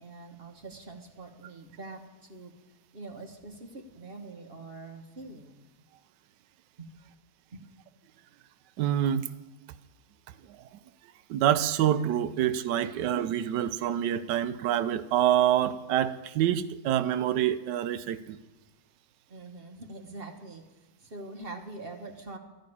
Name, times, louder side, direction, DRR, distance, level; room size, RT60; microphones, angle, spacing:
voice 1, 0.0-2.5 2.9-5.6 6.8-7.0 7.5-7.6 19.3-22.4, right 2 dB, 40° right, 4 dB, 1.1 m, -44 dB
voice 2, 8.8-9.3 10.5-10.6 11.3-18.4, right 11 dB, 85° right, 13 dB, 1.3 m, -26 dB
13.0 x 6.5 x 9.8 m, 1.1 s
omnidirectional pair, 1.8 m